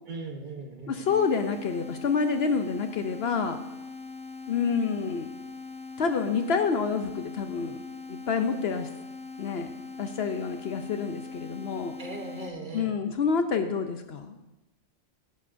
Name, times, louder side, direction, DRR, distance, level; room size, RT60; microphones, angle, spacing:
voice 1, 0.1-1.1 12.0-13.0, right 2 dB, 40° right, 3 dB, 1.1 m, -38 dB
voice 2, 0.9-3.6 4.5-5.3 6.0-7.8 8.1-8.9 9.4-9.7 10.0-12.0 12.7-14.4, left 5 dB, 60° left, 7 dB, 0.8 m, -28 dB
sound 1, 1.1-12.5, left 4 dB, 5° left, 0.6 m, -41 dB
16.0 x 10.5 x 2.6 m, 0.98 s
omnidirectional pair, 1.3 m